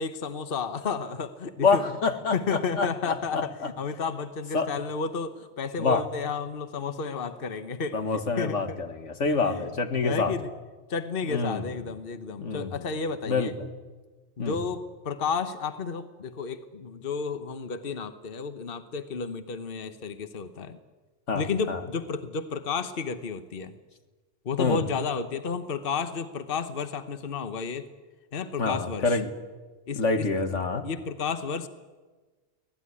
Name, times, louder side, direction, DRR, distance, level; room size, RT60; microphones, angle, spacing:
voice 1, 0.0-1.8 2.3-3.5 3.8-8.8 9.4-9.6 10.0-10.5 10.9-13.6 14.4-20.8 21.3-23.7 24.4-27.9 28.3-29.2 29.9-30.3 30.8-31.7, left 5 dB, 50° left, 10 dB, 1.3 m, -32 dB
voice 2, 1.6-3.7 4.5-4.7 5.8-6.0 7.9-10.3 11.3-11.7 12.4-12.9 13.2-13.7 14.4-14.6 21.3-21.8 24.6-24.8 28.6-29.3 30.0-30.9, left 4 dB, 85° left, 7 dB, 2.1 m, -27 dB
24.0 x 18.0 x 9.8 m, 1.3 s
omnidirectional pair, 1.2 m